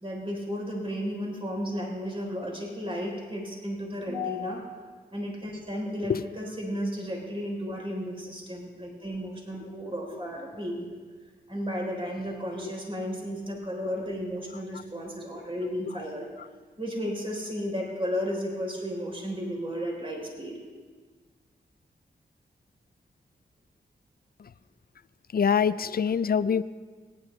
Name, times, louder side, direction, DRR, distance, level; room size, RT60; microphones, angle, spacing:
voice 1, 0.0-4.8 5.1-11.0 11.5-16.3 16.8-20.6, equal, 30° right, -1 dB, 3.7 m, -33 dB
voice 2, 25.3-26.6, left 7 dB, 55° left, 15 dB, 0.5 m, -27 dB
22.5 x 10.5 x 3.2 m, 1.5 s
cardioid pair, 45°, 18 cm